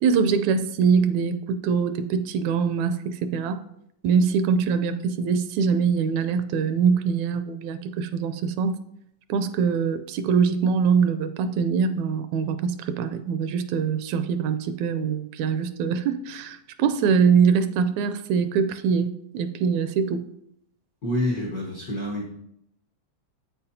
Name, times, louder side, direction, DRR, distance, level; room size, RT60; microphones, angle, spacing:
voice 1, 0.0-3.6 4.0-8.8 9.3-20.3, right 6 dB, 80° right, 11 dB, 1.8 m, -23 dB
voice 2, 21.0-22.3, left 1 dB, 75° left, -2 dB, 0.8 m, -27 dB
8.2 x 8.2 x 2.7 m, 0.75 s
omnidirectional pair, 3.4 m